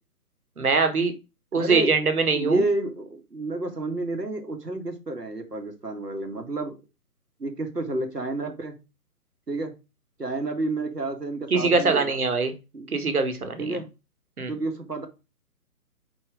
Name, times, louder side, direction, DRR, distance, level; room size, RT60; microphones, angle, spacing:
voice 1, 0.6-1.1 1.5-2.6 11.5-12.5 12.9-13.8 14.4-14.5, right 4 dB, 65° right, 7 dB, 1.8 m, -23 dB
voice 2, 1.5-1.9 2.3-6.8 7.4-8.8 9.5-9.7 10.2-12.2 12.7-13.0 13.6-13.9 14.5-15.1, right 2 dB, 85° right, 5 dB, 1.9 m, -30 dB
5.4 x 5.3 x 4.9 m, 0.29 s
figure-of-eight pair, 140°, 47 cm